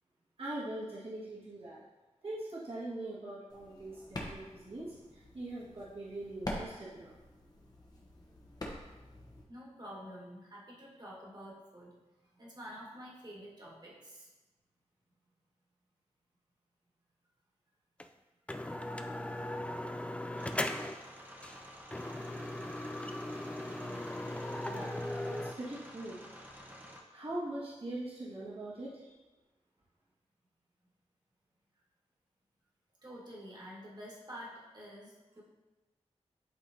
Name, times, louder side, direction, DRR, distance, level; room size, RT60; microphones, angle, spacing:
voice 1, 0.4-1.8 2.2-7.1 24.7-25.0 25.3-26.2 27.1-29.1, right 1 dB, 55° right, -8 dB, 1.7 m, -42 dB
sound 1, 3.5-9.4, left 1 dB, 35° left, 1.2 m, -45 dB
voice 2, 9.5-11.9 12.2-14.3 18.5-18.6 19.2-19.6 33.0-35.4, equal, 35° right, -5 dB, 1.8 m, -49 dB
sound 2, 18.0-18.1 18.5-21.1 21.4-21.6 21.9-25.5, left 1 dB, 10° left, 0.3 m, -38 dB
sound 3, 20.4-27.0, equal, 15° right, 1.0 m, -51 dB
11.0 x 3.7 x 2.8 m, 1.1 s
wide cardioid pair, 100°, 12 cm